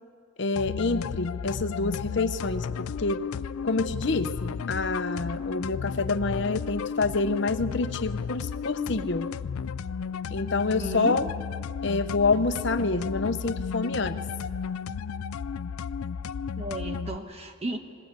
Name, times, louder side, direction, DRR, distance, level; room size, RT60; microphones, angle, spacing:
voice 1, 0.4-3.3 3.6-9.3 10.3-11.3 11.8-14.2, left 3 dB, 55° left, 10 dB, 0.8 m, -27 dB
sound 1, 0.6-17.2, left 6 dB, 90° left, 0.4 m, -33 dB
voice 2, 10.7-11.2 16.6-17.8, right 1 dB, 30° right, 5 dB, 1.1 m, -34 dB
20.5 x 18.5 x 8.3 m, 2.4 s
head